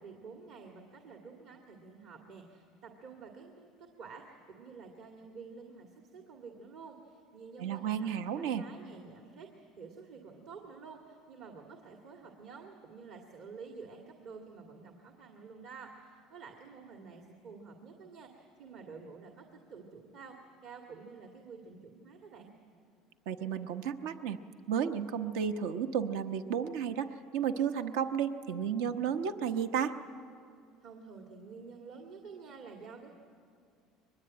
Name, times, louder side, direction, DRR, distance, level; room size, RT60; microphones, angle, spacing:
voice 1, 0.0-20.4 20.6-22.5 30.8-33.1, right 5 dB, 65° right, 2 dB, 2.1 m, -50 dB
voice 2, 7.6-8.6 23.3-24.4 24.7-30.0, right 8 dB, 85° right, 8 dB, 1.0 m, -32 dB
23.0 x 20.5 x 8.8 m, 2.3 s
supercardioid pair, 115°, 0 cm